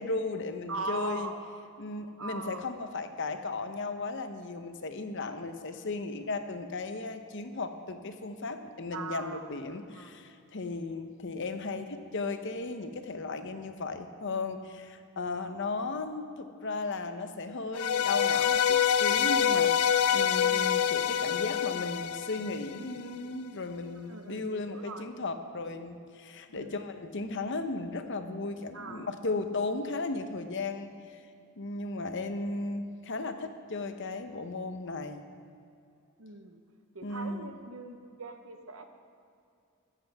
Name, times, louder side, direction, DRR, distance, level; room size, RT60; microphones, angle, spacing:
voice 1, 0.0-1.3 1.8-31.2 31.6-35.3 37.0-37.6, left 3 dB, 60° left, 8 dB, 0.8 m, -36 dB
voice 2, 0.7-1.4 2.2-2.6 8.9-9.4 9.9-10.1 20.4-20.8 24.1-25.0 25.7-25.8 26.5-26.8 28.7-29.1 36.2-36.6 36.9-38.8, right 3 dB, 75° right, 6 dB, 1.1 m, -40 dB
sound 1, 17.7-23.0, left 8 dB, 80° left, 0.4 m, -26 dB
15.0 x 13.5 x 3.5 m, 2.5 s
head